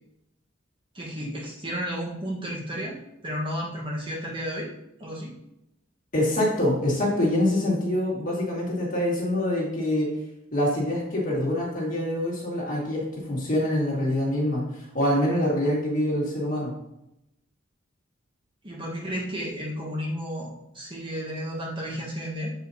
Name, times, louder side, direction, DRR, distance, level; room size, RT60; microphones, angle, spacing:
voice 1, 0.9-4.7 5.0-5.3 18.6-22.5, equal, 25° right, -3 dB, 1.3 m, -32 dB
voice 2, 6.1-10.1 10.5-14.6 14.9-16.7, left 1 dB, 40° left, -4 dB, 1.9 m, -25 dB
7.5 x 4.9 x 2.8 m, 0.84 s
head